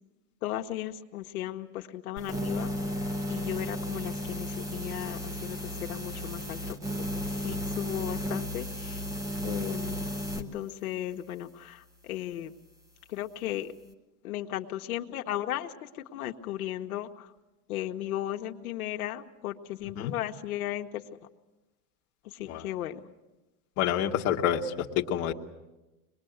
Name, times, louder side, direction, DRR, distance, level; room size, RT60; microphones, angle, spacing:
voice 1, 0.4-2.7 3.3-9.0 9.4-10.0 10.4-12.5 13.1-13.7 14.2-17.3 17.7-21.0 22.2-23.0, left 13 dB, 80° left, 4 dB, 1.3 m, -36 dB
sound 1, 2.2-10.4, equal, 10° right, 1.2 m, -34 dB
voice 2, 23.8-25.3, left 10 dB, 35° left, 1 dB, 1.4 m, -28 dB
24.5 x 21.0 x 8.0 m, 1.1 s
supercardioid pair, 150°, 43 cm